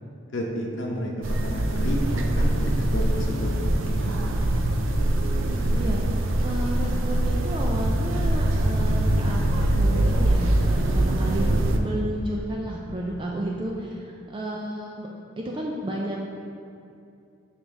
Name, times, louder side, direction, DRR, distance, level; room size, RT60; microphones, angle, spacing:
voice 1, 0.3-3.5 3.8-4.2, equal, 65° left, -2 dB, 0.8 m, -31 dB
sound 1, 1.2-11.8, right 1 dB, 75° right, 0.5 m, -23 dB
voice 2, 5.3-15.1 15.4-16.2, right 1 dB, 25° right, -2 dB, 0.3 m, -32 dB
7.0 x 4.8 x 3.6 m, 2.6 s
head